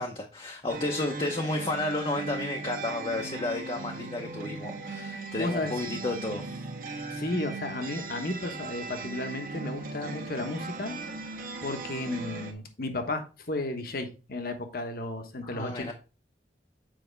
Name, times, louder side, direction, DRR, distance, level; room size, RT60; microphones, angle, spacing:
voice 1, 0.0-6.6 15.4-15.9, left 2 dB, 30° left, 0.8 m, -32 dB
sound 1, 0.7-12.5, right 3 dB, 55° right, 1.1 m, -38 dB
voice 2, 5.4-5.7 6.9-11.0 11.6-15.9, left 2 dB, 55° left, 1.2 m, -33 dB
7.7 x 4.9 x 3.4 m
head